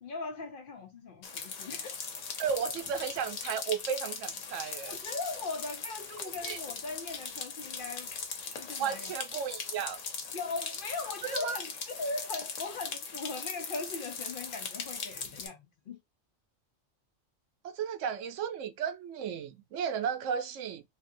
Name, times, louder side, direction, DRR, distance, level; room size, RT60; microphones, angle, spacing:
voice 1, 0.0-2.0 4.9-8.1 8.6-9.1 10.3-16.0, left 3 dB, 55° left, 0.7 m, -39 dB
sound 1, 1.2-15.5, left 5 dB, 90° left, 1.2 m, -40 dB
voice 2, 2.4-5.0 6.4-6.6 8.8-10.0 11.2-11.6 17.6-20.8, right 7 dB, 85° right, 0.9 m, -34 dB
3.3 x 2.7 x 2.6 m
omnidirectional pair, 1.2 m